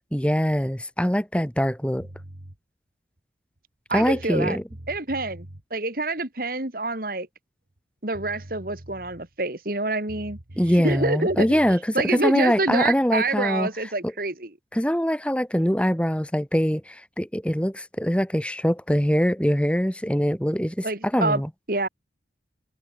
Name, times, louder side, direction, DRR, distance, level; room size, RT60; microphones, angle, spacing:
voice 1, 0.1-2.1 3.9-4.6 10.6-13.7 14.0-14.1 14.7-21.5, equal, 5° left, 1.9 m, -23 dB
sound 1, 2.0-2.6 3.6-3.7 3.9-5.6 7.8-7.9 8.1-9.3 10.1-11.8, right 1 dB, 65° right, 2.2 m, -42 dB
voice 2, 3.9-4.6 4.9-5.5 5.7-7.3 8.0-10.4 10.8-14.5 20.8-21.4 21.7-21.9, right 2 dB, 50° right, 2.5 m, -27 dB
head